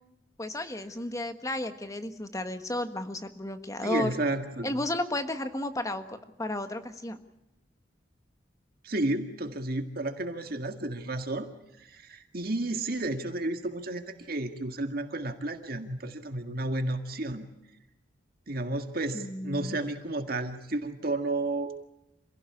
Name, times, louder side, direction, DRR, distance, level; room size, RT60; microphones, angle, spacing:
voice 1, 0.4-4.1 4.6-7.2 19.1-19.8, left 1 dB, 20° left, 8 dB, 1.4 m, -33 dB
voice 2, 3.8-4.7 8.8-11.5 11.8-17.5 18.5-21.9, right 2 dB, 55° right, 6 dB, 1.8 m, -32 dB
27.0 x 17.0 x 8.5 m, 0.89 s
head